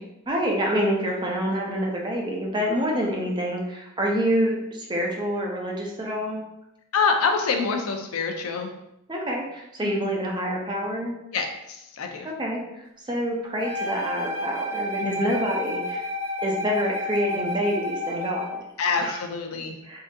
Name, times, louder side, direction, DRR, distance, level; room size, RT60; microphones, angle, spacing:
voice 1, 0.3-6.4 9.1-11.1 12.4-12.6 13.1-16.1 16.4-18.6 19.0-19.2 19.8-20.0, equal, 20° right, -1 dB, 0.5 m, -27 dB
voice 2, 6.9-8.7 9.8-10.0 11.3-12.3 15.0-15.4 18.8-19.8, left 5 dB, 80° left, 3 dB, 0.5 m, -26 dB
Wind instrument woodwind instrument, 13.6-18.6, left 1 dB, 70° right, 0.8 m, -30 dB
3.7 x 2.6 x 2.6 m, 0.86 s
head